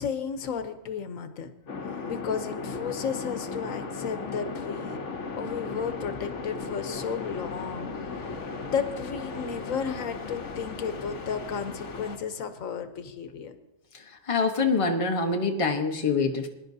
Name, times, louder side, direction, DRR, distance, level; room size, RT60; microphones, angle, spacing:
voice 1, 0.0-1.5 2.1-5.0 5.4-13.5, left 7 dB, 85° left, 9 dB, 1.3 m, -33 dB
sound 1, 1.7-12.2, left 4 dB, 65° left, 1.5 m, -36 dB
voice 2, 13.9-16.5, left 4 dB, 25° left, 3 dB, 1.0 m, -25 dB
22.0 x 10.5 x 2.7 m, 0.96 s
omnidirectional pair, 1.4 m